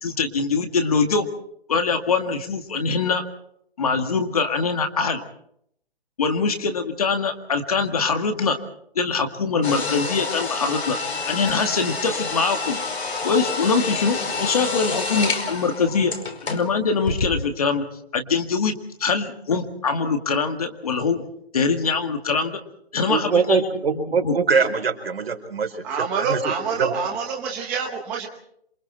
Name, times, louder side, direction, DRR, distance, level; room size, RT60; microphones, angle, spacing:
voice 1, 0.0-1.3 1.7-3.2 3.8-5.2 6.2-8.6 9.0-11.0 11.3-12.8 13.2-16.1 16.4-17.9 18.1-21.2 21.5-22.6 22.9-23.7 23.9-24.4, left 4 dB, 35° left, 6 dB, 2.0 m, -23 dB
sound 1, 9.6-16.7 17.0-17.3, left 4 dB, 80° left, 5.1 m, -28 dB
voice 2, 23.1-26.9, right 5 dB, 65° right, 5 dB, 4.8 m, -23 dB
voice 3, 25.8-28.3, right 5 dB, 5° right, 1 dB, 1.1 m, -26 dB
27.5 x 25.0 x 4.4 m, 0.69 s
hypercardioid pair, 180°, 32 cm